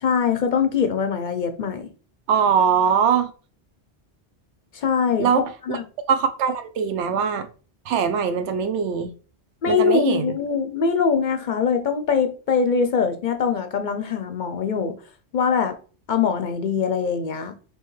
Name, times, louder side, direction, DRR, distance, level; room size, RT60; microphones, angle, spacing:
voice 1, 0.0-1.8 4.7-5.8 9.6-15.0 15.3-15.7 16.1-17.5, left 6 dB, 55° left, 0.6 m, -22 dB
voice 2, 2.3-3.3 5.2-5.4 5.7-5.8 6.1-7.5 7.9-9.1 9.7-10.3, right 7 dB, 90° right, 0.9 m, -21 dB
4.6 x 3.1 x 3.1 m
omnidirectional pair, 1.1 m